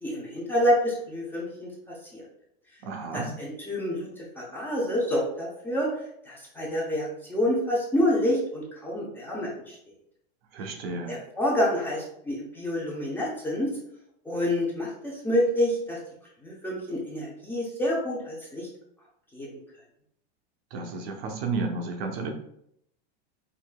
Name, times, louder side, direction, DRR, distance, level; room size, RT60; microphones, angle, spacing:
voice 1, 0.0-2.2 3.1-5.9 6.3-9.8 11.1-13.7 14.2-16.0 16.4-18.7 19.3-19.6, left 1 dB, 5° left, -5 dB, 0.6 m, -28 dB
voice 2, 2.8-3.3 10.5-11.2 20.7-22.3, right 3 dB, 65° right, 3 dB, 0.8 m, -32 dB
4.8 x 2.7 x 2.2 m, 0.73 s
supercardioid pair, 150°, 33 cm